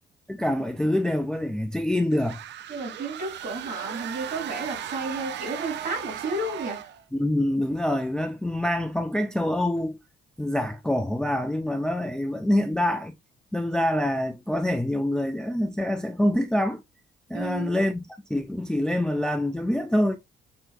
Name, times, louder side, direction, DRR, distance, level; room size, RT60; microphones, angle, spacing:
voice 1, 0.3-2.4 7.1-10.0 10.4-13.2 13.5-16.8 17.3-20.2, left 1 dB, 5° left, 0.4 m, -25 dB
sound 1, 2.1-7.0, right 11 dB, 60° right, 0.4 m, -37 dB
voice 2, 2.7-6.9 17.3-17.8, right 2 dB, 45° right, 2.2 m, -32 dB
5.8 x 2.7 x 2.3 m
cardioid pair, 90°, 20 cm